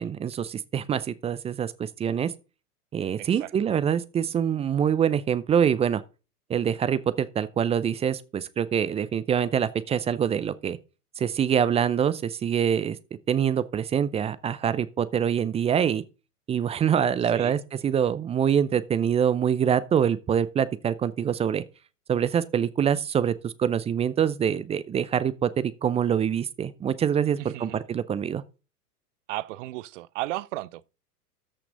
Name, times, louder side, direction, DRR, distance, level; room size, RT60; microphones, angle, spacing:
voice 1, 0.0-2.3 2.9-6.0 6.5-10.8 11.2-13.0 13.3-16.0 16.5-21.6 22.1-28.4, right 8 dB, 15° right, 0.5 m, -25 dB
voice 2, 3.2-3.5 17.3-17.6 27.4-27.8 29.3-30.8, right 17 dB, 50° right, 0.7 m, -34 dB
13.5 x 5.9 x 3.9 m
figure-of-eight pair, 95°, 47 cm